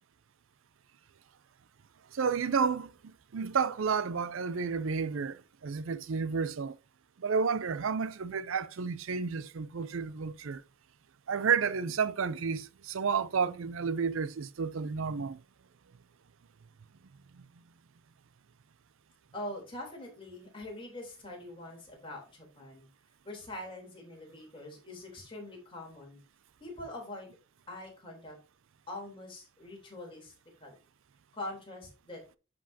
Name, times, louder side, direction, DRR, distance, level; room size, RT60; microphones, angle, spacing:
voice 1, 2.1-6.8 7.2-10.6 11.3-15.4, right 5 dB, 60° right, 0.5 m, -31 dB
voice 2, 19.3-22.9 23.2-26.2 26.6-27.3 27.7-28.4 28.9-30.3 30.6-30.8 31.3-32.2, left 1 dB, 25° left, 3.4 m, -43 dB
11.0 x 5.3 x 2.8 m
head